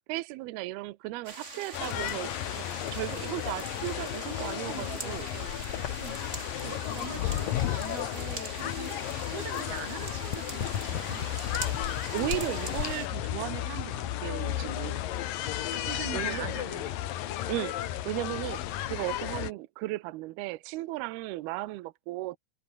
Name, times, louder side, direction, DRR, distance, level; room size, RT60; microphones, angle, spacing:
voice 1, 0.1-2.7 2.9-5.2 6.6-6.8 12.1-15.0 16.1-16.5 17.5-18.6 18.9-22.4, right 18 dB, 80° right, 2.2 m, -36 dB
sound 1, 1.2-13.1, right 3 dB, 25° right, 1.8 m, -43 dB
sound 2, 1.7-19.5, left 13 dB, 65° left, 2.3 m, -34 dB
voice 2, 4.5-5.7 6.0-6.3 6.8-9.0 9.3-11.3 15.7-17.0, right 4 dB, 50° right, 8.6 m, -42 dB
sound 3, 5.2-19.5, left 10 dB, 90° left, 1.4 m, -42 dB
omnidirectional pair, 5.6 m